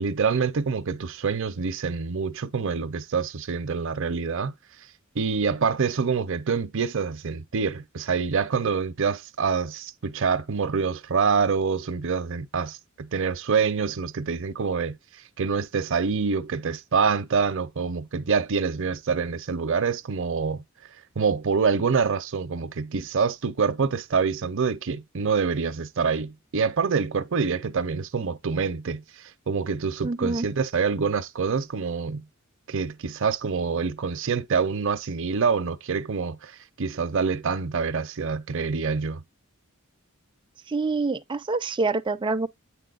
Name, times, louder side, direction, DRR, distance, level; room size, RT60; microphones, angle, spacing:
voice 1, 0.0-4.5 5.1-15.0 15.4-20.6 21.2-29.0 29.5-32.2 32.7-36.5 36.8-39.2, right 5 dB, 65° right, 0.6 m, -26 dB
voice 2, 30.0-30.5 40.7-42.5, right 3 dB, 25° right, 0.5 m, -26 dB
8.6 x 4.6 x 2.4 m
head